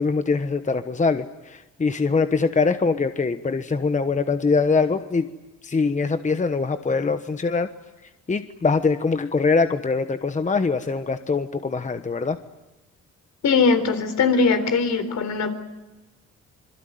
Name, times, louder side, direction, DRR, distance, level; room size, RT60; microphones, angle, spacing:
voice 1, 0.0-5.3 5.6-7.7 8.3-12.4, left 4 dB, 25° left, 9 dB, 1.1 m, -23 dB
voice 2, 13.4-15.5, left 4 dB, 65° left, 8 dB, 3.8 m, -20 dB
26.5 x 22.0 x 9.4 m, 1.0 s
cardioid pair, 90°, 30 cm